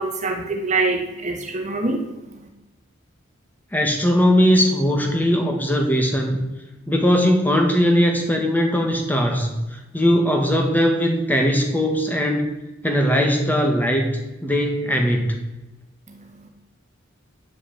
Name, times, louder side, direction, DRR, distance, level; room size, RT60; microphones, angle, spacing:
voice 1, 0.0-2.5 16.1-16.5, right 3 dB, 35° right, 3 dB, 1.5 m, -25 dB
voice 2, 3.7-6.4 6.9-12.5 12.8-15.4, equal, 10° left, 2 dB, 1.7 m, -19 dB
9.5 x 6.8 x 8.7 m, 1.0 s
head